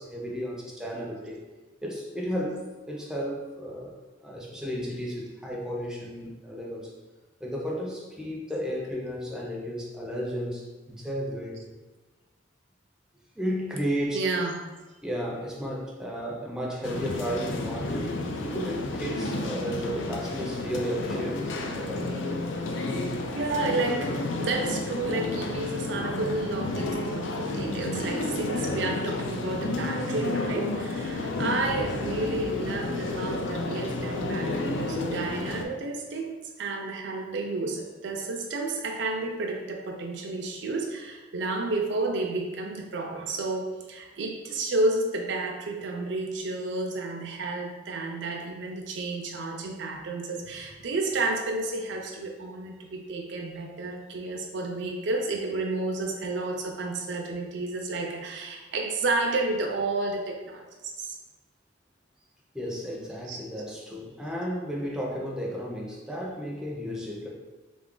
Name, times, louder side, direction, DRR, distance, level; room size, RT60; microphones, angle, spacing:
voice 1, 0.0-1.4 1.8-3.9 4.2-6.9 7.4-11.7 13.3-14.2 15.0-22.1 26.0-26.1 62.5-67.3, equal, 5° right, -2 dB, 0.5 m, -33 dB
voice 2, 14.1-14.6 23.4-61.2 63.3-63.4, right 2 dB, 65° right, 1 dB, 0.4 m, -31 dB
sound 1, 16.8-35.6, left 2 dB, 80° left, 0.4 m, -31 dB
3.6 x 2.4 x 3.7 m, 1.2 s
head